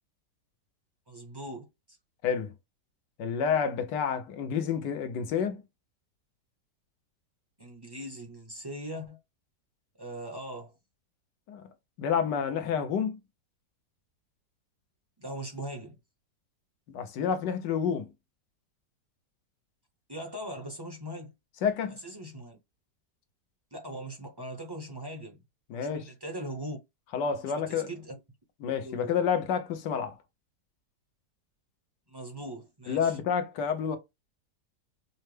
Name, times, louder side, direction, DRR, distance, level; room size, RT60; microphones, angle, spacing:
voice 1, 1.1-1.7 7.6-9.2 10.0-10.7 15.2-16.0 20.1-21.3 21.9-22.6 23.7-25.4 25.7-26.8 27.7-28.1 28.8-29.1 32.1-33.2, right 1 dB, 25° right, 0.5 m, -40 dB
voice 2, 3.2-5.6 11.5-11.6 12.0-13.2 16.9-18.1 21.6-21.9 25.7-26.1 27.1-27.9 28.6-30.2 32.9-34.0, left 7 dB, 80° left, 1.4 m, -29 dB
5.5 x 2.0 x 3.2 m
omnidirectional pair, 1.9 m